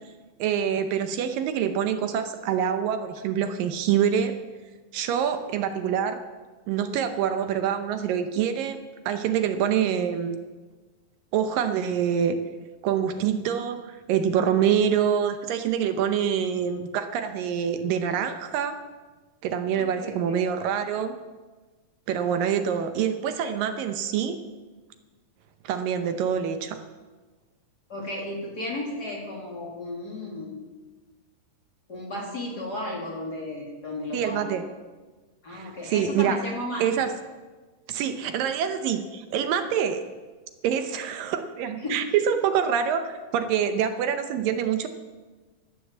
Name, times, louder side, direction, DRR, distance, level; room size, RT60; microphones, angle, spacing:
voice 1, 0.4-4.4 4.9-6.2 6.7-8.8 9.1-10.4 11.3-12.4 12.8-18.8 19.4-21.1 22.1-24.4 25.6-26.8 34.1-34.6 35.5-36.4 36.8-37.1 37.9-40.0 40.6-44.9, right 8 dB, 75° right, 8 dB, 2.5 m, -25 dB
voice 2, 19.7-20.5 23.4-23.6 27.9-30.6 31.9-34.5 35.4-36.8 41.8-42.0, left 1 dB, 30° left, -2 dB, 2.6 m, -34 dB
14.5 x 11.0 x 7.3 m, 1.3 s
omnidirectional pair, 4.1 m